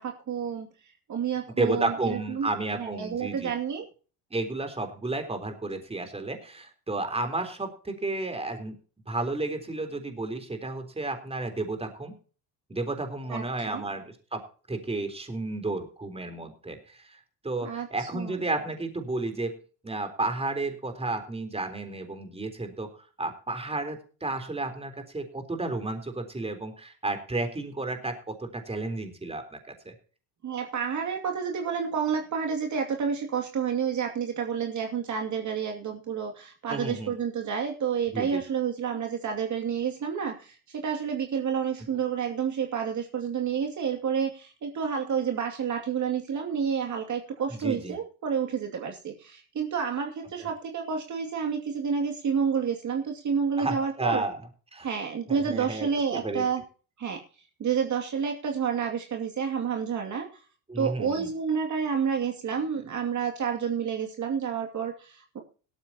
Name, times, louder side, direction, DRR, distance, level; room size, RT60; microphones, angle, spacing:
voice 1, 0.0-2.5 2.8-3.9 13.3-13.8 17.6-18.4 30.4-54.2 54.8-56.6 57.0-57.2 57.6-60.4 60.8-65.4, right 7 dB, 40° right, 3 dB, 2.5 m, -29 dB
voice 2, 1.6-3.5 4.3-8.8 9.1-12.1 12.7-22.9 23.2-29.6 29.9-30.0 36.7-37.1 38.1-38.4 47.5-48.0 50.4-50.5 53.6-54.4 54.7-54.9 55.3-56.4 60.7-61.3, right 2 dB, 15° right, 6 dB, 3.8 m, -32 dB
17.5 x 13.5 x 2.9 m, 0.38 s
supercardioid pair, 105°, 44 cm